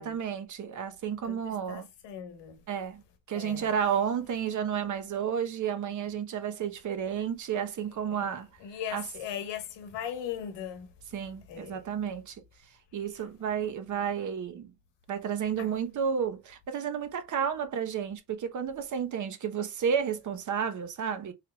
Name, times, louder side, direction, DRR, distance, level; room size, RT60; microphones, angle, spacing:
voice 1, 0.0-1.9 2.7-8.5 8.9-9.1 11.1-12.4 12.7-14.7 15.1-21.3, right 7 dB, 45° right, 0.8 m, -32 dB
voice 2, 1.3-2.5 3.3-3.7 8.1-8.2 8.6-10.9 11.5-11.7, left 9 dB, 80° left, 1.1 m, -38 dB
4.5 x 3.3 x 2.2 m
cardioid pair, 160°, 42 cm